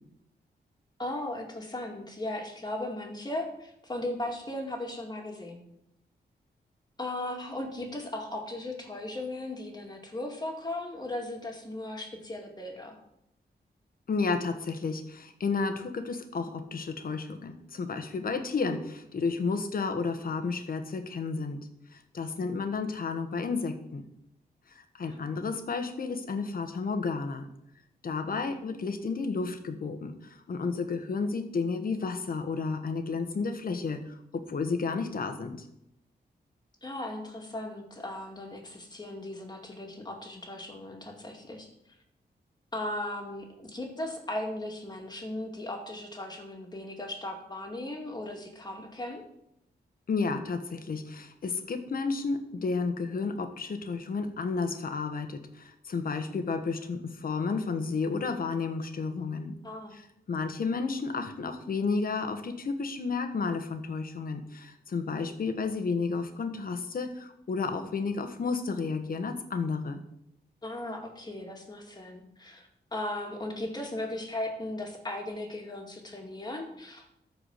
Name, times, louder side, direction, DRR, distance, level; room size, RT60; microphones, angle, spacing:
voice 1, 1.0-5.6 7.0-13.0 25.0-25.4 28.3-28.6 36.8-41.7 42.7-49.2 59.6-59.9 70.6-77.2, left 1 dB, 25° left, 2 dB, 2.3 m, -37 dB
voice 2, 14.1-24.0 24.7-27.5 28.0-35.7 50.1-59.5 59.9-60.0 60.3-70.0, left 4 dB, 60° left, 7 dB, 1.3 m, -32 dB
13.5 x 4.9 x 6.5 m, 0.79 s
wide cardioid pair, 100°, 17 cm